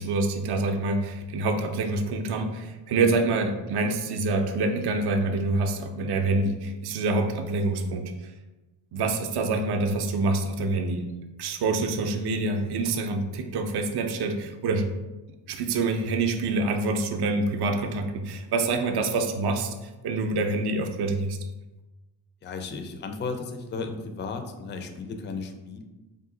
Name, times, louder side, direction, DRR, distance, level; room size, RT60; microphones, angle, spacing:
voice 1, 0.0-8.3 8.9-11.1 11.4-14.9 15.5-21.4, right 3 dB, 55° right, 5 dB, 0.5 m, -26 dB
voice 2, 22.4-25.8, left 4 dB, 25° left, 5 dB, 0.3 m, -34 dB
3.8 x 2.7 x 3.7 m, 1.1 s
wide cardioid pair, 110°, 47 cm